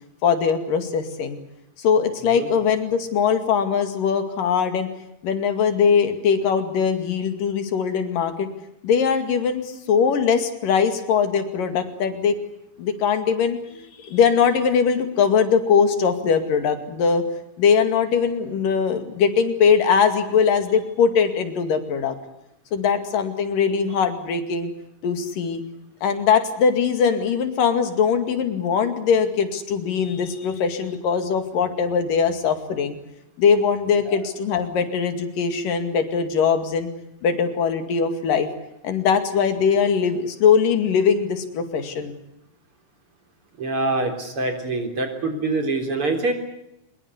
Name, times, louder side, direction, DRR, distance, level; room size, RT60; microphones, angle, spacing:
voice 1, 0.2-1.4 1.8-4.9 5.2-8.5 8.8-12.3 12.8-17.2 17.6-22.2 22.7-24.7 25.0-25.6 26.0-33.0 33.4-36.9 37.2-38.5 38.8-42.1, left 6 dB, 85° left, 8 dB, 4.0 m, -21 dB
voice 2, 43.6-46.3, right 2 dB, 40° right, 5 dB, 4.6 m, -25 dB
25.0 x 22.0 x 8.3 m, 0.84 s
omnidirectional pair, 3.8 m